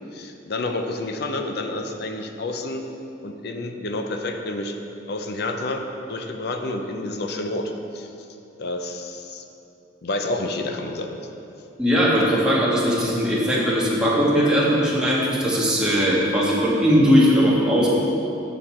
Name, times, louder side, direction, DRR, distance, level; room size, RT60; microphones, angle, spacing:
voice 1, 0.1-2.9 3.2-4.8 5.1-8.1 8.6-9.4 10.0-11.2, left 2 dB, 55° left, 5 dB, 0.5 m, -29 dB
voice 2, 11.8-17.9, equal, 5° right, -7 dB, 1.3 m, -19 dB
7.7 x 6.5 x 4.3 m, 2.9 s
head